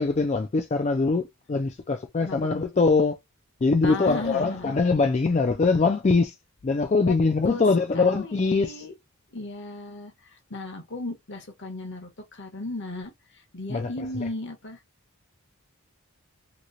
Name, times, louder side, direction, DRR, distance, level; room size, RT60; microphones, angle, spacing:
voice 1, 0.0-3.2 3.6-6.4 6.6-8.8 13.7-14.3, left 4 dB, 30° left, 0.4 m, -23 dB
voice 2, 2.2-2.6 3.8-4.8 7.0-7.1 7.4-7.6 7.9-8.9 9.3-14.8, left 2 dB, 55° left, 1.0 m, -36 dB
2.9 x 2.8 x 2.5 m
head